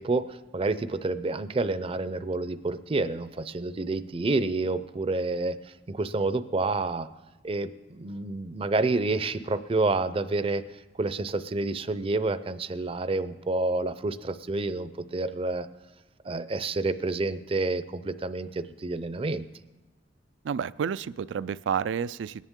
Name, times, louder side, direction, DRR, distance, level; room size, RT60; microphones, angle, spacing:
voice 1, 0.0-5.6 5.9-7.1 7.4-10.6 11.0-15.7 16.2-19.5, right 3 dB, 30° right, 13 dB, 0.5 m, -29 dB
voice 2, 20.4-22.4, right 7 dB, 90° right, 17 dB, 0.3 m, -30 dB
21.5 x 9.8 x 3.7 m, 1.1 s
head